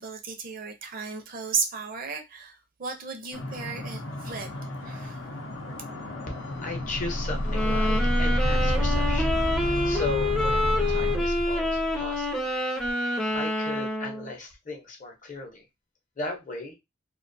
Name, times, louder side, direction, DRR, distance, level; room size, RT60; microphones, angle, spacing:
voice 1, 0.0-5.3, right 5 dB, 45° right, 0.5 m, -34 dB
sound 1, 3.3-11.2, left 1 dB, 80° left, 0.6 m, -36 dB
voice 2, 6.3-12.7 13.3-15.6 16.2-16.7, left 2 dB, 40° left, 0.7 m, -37 dB
sound 2, 6.8-12.3 12.8-12.9, equal, 75° right, 0.8 m, -28 dB
sound 3, 7.4-14.3, left 1 dB, 5° left, 0.4 m, -27 dB
2.4 x 2.2 x 2.6 m
head